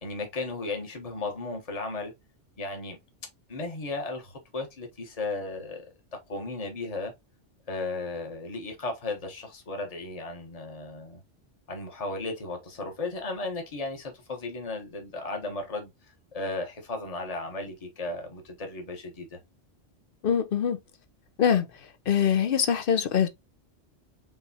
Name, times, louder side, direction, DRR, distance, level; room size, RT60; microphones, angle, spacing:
voice 1, 0.0-2.1 2.6-3.0 3.5-5.8 6.3-7.1 7.7-11.2 11.7-15.9 16.3-19.4, left 3 dB, 30° left, 1.3 m, -35 dB
voice 2, 20.2-20.8 21.4-23.3, left 8 dB, 55° left, 0.8 m, -24 dB
5.4 x 3.2 x 2.8 m
omnidirectional pair, 1.2 m